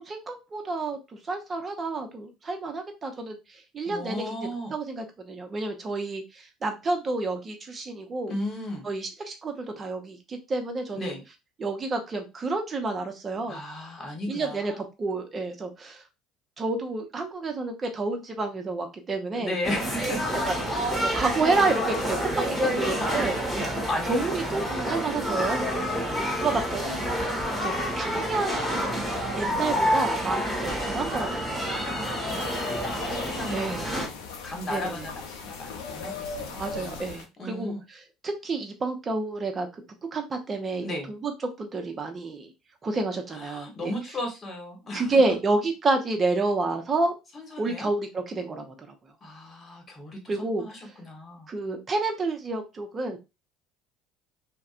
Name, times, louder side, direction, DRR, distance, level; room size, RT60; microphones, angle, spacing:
voice 1, 0.1-1.0 1.3-3.4 3.7-4.2 4.7-8.3 8.8-11.1 11.6-13.6 14.3-14.7 15.0-16.0 16.6-19.5 20.5-23.6 24.1-27.1 27.5-28.7 29.3-31.9 33.5-33.8 34.7-35.1 36.5-37.7 38.2-39.8 40.1-40.8 41.2-41.3 41.6-42.5 42.8-43.9 44.9-47.1 47.6-48.7 50.3-50.6 51.5-53.2, right 3 dB, 30° right, 4 dB, 0.7 m, -29 dB
voice 2, 3.8-4.7 8.3-8.9 10.9-11.2 13.5-14.8 19.3-20.4 23.9-24.3 25.7-26.3 31.7-37.8 40.8-41.1 43.3-45.2 47.3-47.9 49.2-51.5, left 1 dB, 35° left, 2 dB, 1.1 m, -36 dB
sound 1, 19.6-34.1, equal, ahead, 1.3 m, -28 dB
sound 2, 32.3-37.2, left 4 dB, 75° left, 0.5 m, -38 dB
2.5 x 2.1 x 2.4 m, 0.26 s
hypercardioid pair, 70°, 0 cm